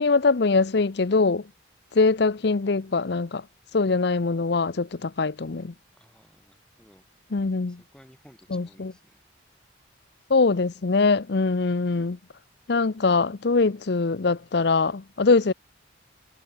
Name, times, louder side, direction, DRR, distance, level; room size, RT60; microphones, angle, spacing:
voice 1, 0.0-1.5 1.9-3.4 3.7-5.7 7.3-7.8 8.5-8.9 10.3-12.2 12.7-15.5, left 4 dB, 55° left, 0.6 m, -22 dB
voice 2, 6.0-7.0 7.7-9.2, equal, 5° left, 2.6 m, -55 dB
head